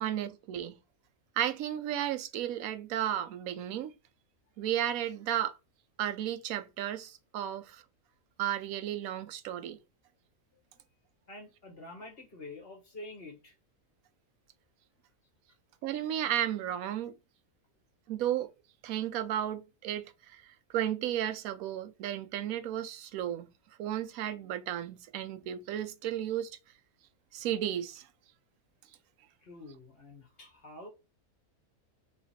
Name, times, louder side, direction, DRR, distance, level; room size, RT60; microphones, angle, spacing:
voice 1, 0.0-0.8 1.4-3.9 4.6-5.5 6.0-7.8 8.4-9.8 15.8-17.1 18.1-18.5 18.8-20.4 20.7-23.5 23.8-26.5 27.3-28.1, right 11 dB, 75° right, 1.0 m, -33 dB
voice 2, 11.3-13.5 29.4-30.9, left 2 dB, 45° left, 1.3 m, -47 dB
3.2 x 3.1 x 4.0 m
omnidirectional pair, 1.5 m